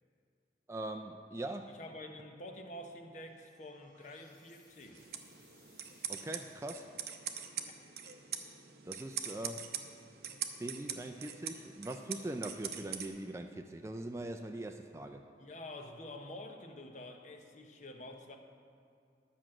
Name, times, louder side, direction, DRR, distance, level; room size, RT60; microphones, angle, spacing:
voice 1, 0.7-1.7 6.1-6.9 8.9-9.7 10.6-15.2, right 1 dB, 15° right, 6 dB, 0.3 m, -41 dB
voice 2, 1.7-5.1 15.4-18.4, left 1 dB, 45° left, 3 dB, 0.9 m, -48 dB
sound 1, 3.2-7.5, left 2 dB, 25° left, 2.3 m, -66 dB
sound 2, 4.9-13.1, right 8 dB, 65° right, 0.7 m, -43 dB
10.5 x 6.0 x 7.6 m, 2.3 s
head